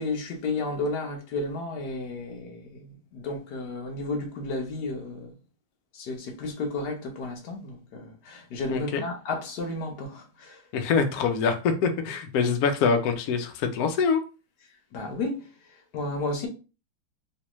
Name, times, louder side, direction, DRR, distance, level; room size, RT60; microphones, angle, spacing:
voice 1, 0.0-5.3 5.9-10.6 14.9-15.5 15.9-16.5, left 2 dB, 65° left, 1.2 m, -32 dB
voice 2, 8.7-9.0 10.7-14.2, left 5 dB, 85° left, 0.8 m, -24 dB
3.2 x 3.1 x 3.0 m
omnidirectional pair, 2.3 m